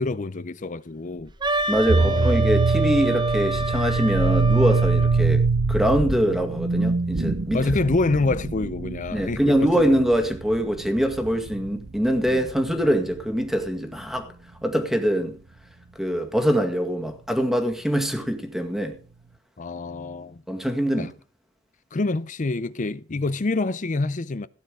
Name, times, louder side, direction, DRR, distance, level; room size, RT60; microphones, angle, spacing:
voice 1, 0.0-1.3 2.0-2.3 7.5-9.9 12.3-12.5 19.6-20.4 21.0-21.1 21.9-24.5, left 3 dB, 40° left, 0.6 m, -26 dB
sound 1, 1.3-6.1, equal, 60° left, 3.6 m, -33 dB
Wind instrument woodwind instrument, 1.4-5.2, right 2 dB, 20° right, 0.9 m, -27 dB
voice 2, 1.7-7.7 9.1-14.3 14.6-15.4 16.0-19.0 20.5-21.1, equal, ahead, 2.0 m, -23 dB
sound 2, 1.9-13.1, right 4 dB, 65° right, 0.8 m, -24 dB
16.5 x 9.1 x 4.9 m
head